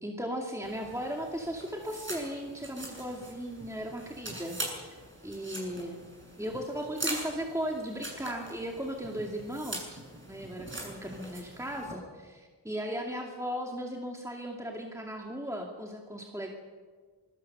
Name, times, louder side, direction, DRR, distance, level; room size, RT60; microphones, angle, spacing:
voice 1, 0.0-6.0 6.4-10.0 10.3-16.5, equal, 5° right, 1 dB, 2.4 m, -37 dB
sound 1, 0.6-11.9, right 1 dB, 25° right, 7.6 m, -42 dB
26.5 x 21.0 x 6.8 m, 1.5 s
wide cardioid pair, 115°, 42 cm